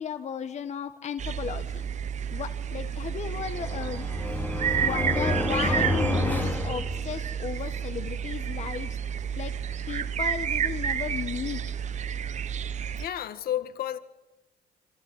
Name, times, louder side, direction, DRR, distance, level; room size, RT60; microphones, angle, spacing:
voice 1, 0.0-1.8 2.3-4.1 4.8-9.0 9.4-9.5 9.9-11.6, left 7 dB, 40° left, 1.5 m, -35 dB
sound 1, 1.2-13.1, right 8 dB, 45° right, 1.1 m, -31 dB
sound 2, 3.1-7.5, left 1 dB, 10° left, 3.9 m, -29 dB
voice 2, 13.0-14.0, left 11 dB, 65° left, 1.9 m, -31 dB
27.5 x 15.0 x 10.0 m
cardioid pair, 110°, 17 cm